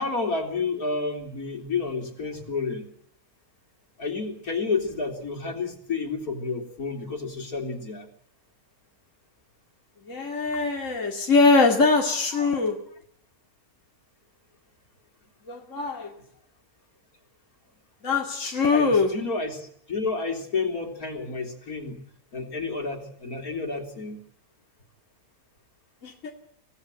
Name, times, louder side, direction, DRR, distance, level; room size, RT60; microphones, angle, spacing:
voice 1, 0.0-2.9 4.0-8.1 12.4-12.5 18.7-22.0 22.3-24.2, left 4 dB, 85° left, 3 dB, 4.1 m, -30 dB
voice 2, 10.1-12.8 15.5-16.1 18.0-19.1 26.0-26.3, left 3 dB, 60° left, 0 dB, 2.7 m, -22 dB
25.0 x 17.0 x 9.0 m, 0.66 s
omnidirectional pair, 1.5 m